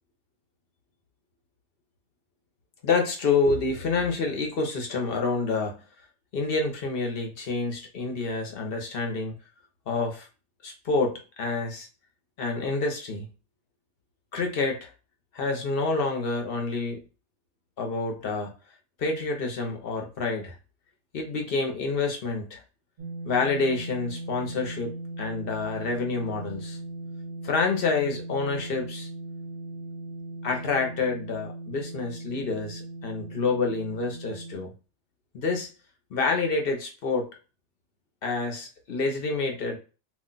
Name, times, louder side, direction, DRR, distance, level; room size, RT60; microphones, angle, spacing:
voice 1, 2.8-5.8 6.3-9.4 9.9-10.3 10.6-11.9 12.4-13.3 14.3-14.9 15.3-17.0 17.8-18.5 19.0-20.6 21.1-22.6 23.2-26.8 27.4-29.1 30.4-34.7 35.3-35.7 36.1-37.3 38.2-39.8, left 4 dB, 55° left, 3 dB, 0.9 m, -28 dB
sound 1, 23.0-34.6, right 2 dB, 60° right, 0.8 m, -38 dB
2.5 x 2.1 x 3.8 m, 0.33 s
omnidirectional pair, 1.2 m